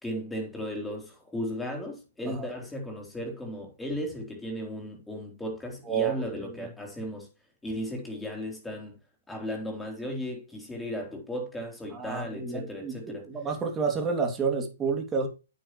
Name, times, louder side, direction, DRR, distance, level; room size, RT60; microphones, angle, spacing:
voice 1, 0.0-7.3 7.6-8.9 9.3-13.3, equal, 5° left, 4.1 m, -35 dB
voice 2, 5.9-6.7 11.9-15.3, right 5 dB, 15° right, 2.9 m, -30 dB
9.2 x 9.1 x 3.3 m
hypercardioid pair, 145°, 0 cm